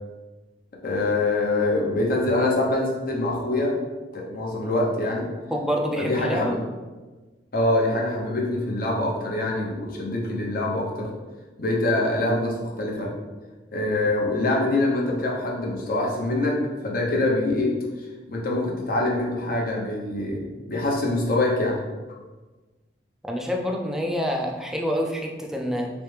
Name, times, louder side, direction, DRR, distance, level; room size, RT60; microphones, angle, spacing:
voice 1, 0.8-3.8 4.1-5.3 6.0-6.6 7.5-11.1 11.6-13.1 13.7-17.7 18.3-21.8, left 2 dB, 50° left, -1 dB, 0.8 m, -24 dB
voice 2, 5.5-6.5 23.2-25.9, equal, 5° right, 0 dB, 0.3 m, -27 dB
3.2 x 3.2 x 3.2 m, 1.3 s
head